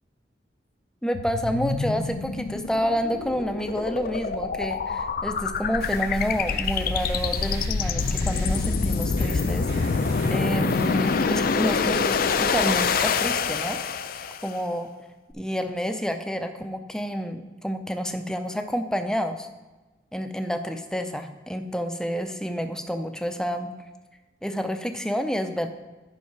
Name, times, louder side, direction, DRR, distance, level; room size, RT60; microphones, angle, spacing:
voice 1, 1.0-10.0 10.3-13.8 14.4-14.9 15.3-19.5 20.1-23.7 24.4-25.7, equal, 5° left, 7 dB, 0.5 m, -29 dB
sound 1, 1.1-14.5, left 5 dB, 55° left, 0.5 m, -26 dB
sound 2, 5.8-11.2, right 1 dB, 65° right, 2.6 m, -41 dB
10.0 x 5.6 x 4.6 m, 1.2 s
head